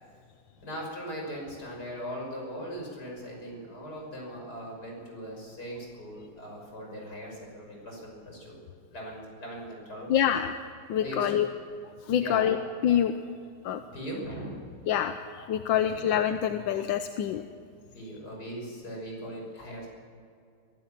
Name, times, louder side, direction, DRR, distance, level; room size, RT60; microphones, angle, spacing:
voice 1, 0.6-8.6 8.9-10.1 11.0-11.6 12.2-12.6 13.9-14.8 15.7-16.1 17.9-19.9, equal, 45° left, -1 dB, 6.5 m, -39 dB
voice 2, 10.1-10.5 10.9-11.5 12.1-12.6 12.8-13.1 13.6-13.8 14.9-17.4, left 10 dB, 70° left, 8 dB, 1.5 m, -26 dB
22.5 x 16.5 x 7.5 m, 2.4 s
omnidirectional pair, 2.4 m